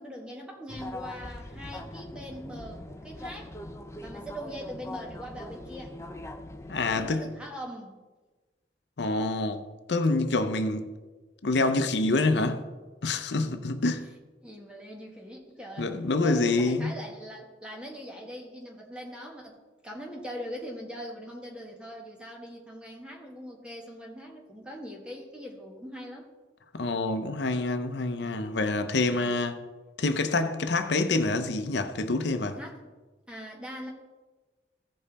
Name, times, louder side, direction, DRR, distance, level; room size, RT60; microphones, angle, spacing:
voice 1, 0.0-3.5 4.0-6.0 6.8-8.0 13.2-13.5 14.4-19.6 19.8-26.3 29.1-29.4 32.6-32.8 33.3-33.9, equal, 5° right, 1.6 m, -41 dB
sound 1, 0.7-7.2, left 1 dB, 15° left, 0.6 m, -42 dB
voice 2, 6.7-7.2 9.0-9.6 9.9-10.9 11.4-12.6 13.0-14.0 15.8-16.9 26.7-29.6 30.0-32.6, left 2 dB, 85° left, 0.7 m, -26 dB
15.5 x 5.4 x 4.2 m
head